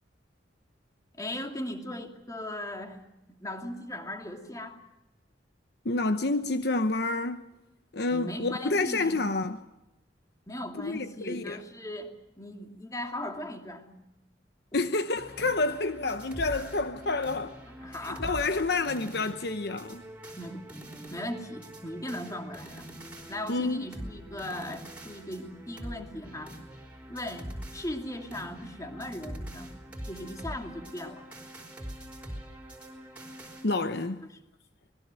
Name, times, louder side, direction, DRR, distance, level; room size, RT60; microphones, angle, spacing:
voice 1, 1.1-3.0 3.3-4.8 8.1-9.2 10.5-13.9 17.8-18.2 20.4-20.7 21.1-22.9 23.3-26.5 27.1-31.3 34.2-34.3, left 1 dB, 20° left, 2.7 m, -38 dB
voice 2, 5.8-7.5 7.9-9.6 10.7-11.6 14.7-17.6 18.0-20.0 23.5-23.9 33.6-34.2, left 3 dB, 60° left, 1.0 m, -29 dB
sound 1, 15.2-33.7, right 1 dB, 10° right, 4.8 m, -44 dB
26.5 x 20.5 x 7.7 m
head